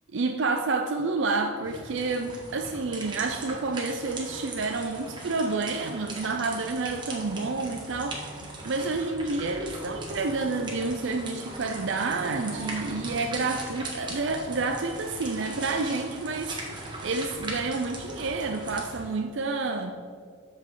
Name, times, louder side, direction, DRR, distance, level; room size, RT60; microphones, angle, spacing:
voice 1, 0.1-16.6 17.0-19.9, right 3 dB, 65° right, 4 dB, 0.5 m, -29 dB
sound 1, 1.6-19.0, right 2 dB, 20° right, 1.4 m, -39 dB
13.5 x 5.3 x 3.8 m, 2.1 s
head